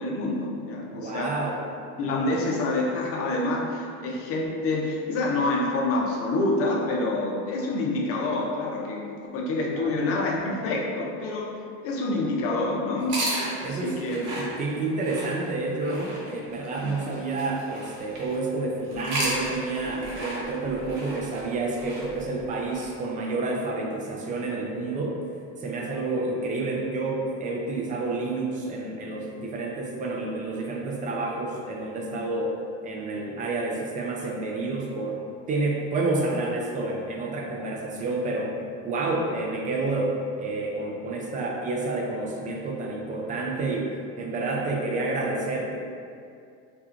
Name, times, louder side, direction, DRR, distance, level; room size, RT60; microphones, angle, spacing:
voice 1, 0.0-1.4 2.0-13.2 13.6-14.2 16.8-17.0, left 2 dB, 45° left, -1 dB, 0.5 m, -27 dB
voice 2, 0.9-1.6 7.1-7.3 9.7-10.0 13.6-14.0 14.4-25.2 25.6-32.6 32.8-35.2 35.5-38.5 38.8-43.9 44.2-45.8, right 2 dB, 25° right, -1 dB, 0.4 m, -29 dB
sound 1, 13.0-18.4 18.9-22.9, right 1 dB, 65° right, 1.0 m, -34 dB
4.3 x 2.3 x 2.4 m, 2.3 s
cardioid pair, 150°, 33 cm